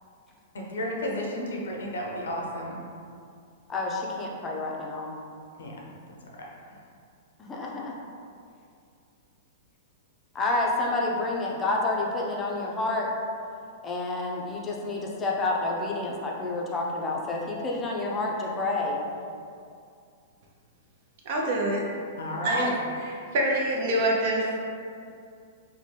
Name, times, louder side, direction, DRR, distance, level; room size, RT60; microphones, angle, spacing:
voice 1, 0.5-2.8 5.6-5.8 22.2-22.7, left 1 dB, 90° left, -1 dB, 0.6 m, -32 dB
voice 2, 3.7-5.1 7.4-7.9 10.3-13.1 13.8-19.0, left 2 dB, 20° left, -2 dB, 0.5 m, -29 dB
voice 3, 21.3-21.8 22.4-22.7 23.0-24.6, right 1 dB, 55° right, -2 dB, 0.6 m, -26 dB
2.9 x 2.1 x 3.2 m, 2.4 s
hypercardioid pair, 135°, 0 cm